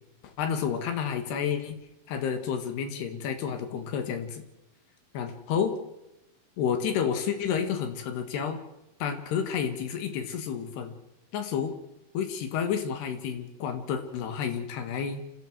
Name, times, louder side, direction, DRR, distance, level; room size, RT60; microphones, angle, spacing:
voice 1, 0.2-1.8 2.1-4.4 5.1-5.8 6.6-8.6 9.0-11.0 11.3-11.8 12.1-15.2, left 7 dB, 90° left, 7 dB, 4.0 m, -30 dB
27.0 x 15.5 x 7.4 m, 0.93 s
omnidirectional pair, 4.6 m